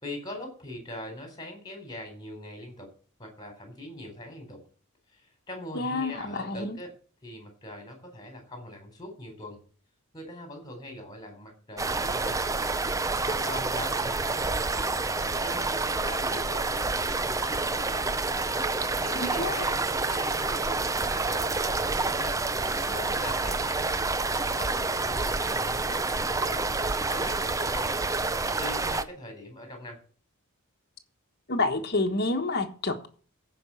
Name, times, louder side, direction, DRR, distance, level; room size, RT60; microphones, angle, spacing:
voice 1, 0.0-2.9 3.2-4.6 5.1-6.9 7.2-9.6 10.1-12.4 13.2-14.9 15.4-16.6 16.9-18.0 19.0-20.8 21.1-22.4 22.8-24.0 24.5-26.7 27.1-27.9 28.6-30.0, left 1 dB, 20° left, 3.9 m, -42 dB
voice 2, 5.7-6.8 19.1-19.6 31.5-33.1, left 2 dB, 45° left, 1.4 m, -29 dB
sound 1, 11.8-29.0, right 3 dB, 15° right, 0.5 m, -28 dB
15.0 x 5.3 x 7.6 m
head